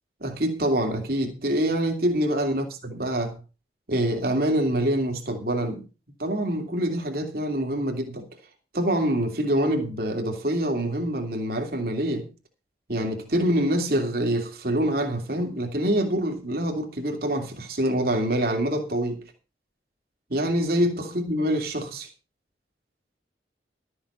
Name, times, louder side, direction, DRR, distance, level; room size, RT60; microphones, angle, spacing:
voice 1, 0.2-2.6 3.0-3.4 3.9-5.8 6.2-8.3 8.7-12.3 12.9-19.2 20.3-22.1, right 1 dB, 55° right, 2.9 m, -25 dB
13.0 x 7.9 x 5.7 m
head